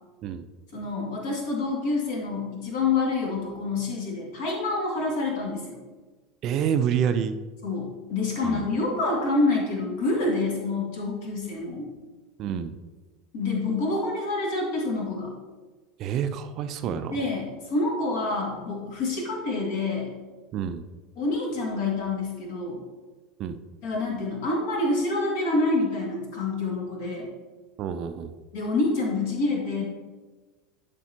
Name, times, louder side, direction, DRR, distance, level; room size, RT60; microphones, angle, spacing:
voice 1, 0.7-5.8 7.6-11.9 13.3-15.3 17.1-20.1 21.2-22.8 23.8-27.3 28.5-29.8, left 3 dB, 60° left, -1 dB, 2.1 m, -27 dB
voice 2, 6.4-7.4 8.4-8.7 12.4-12.7 16.0-17.2 20.5-20.8 23.4-23.6 27.8-28.3, right 8 dB, 45° right, 9 dB, 0.4 m, -28 dB
11.0 x 4.9 x 2.9 m, 1.3 s
figure-of-eight pair, 75°, 0 cm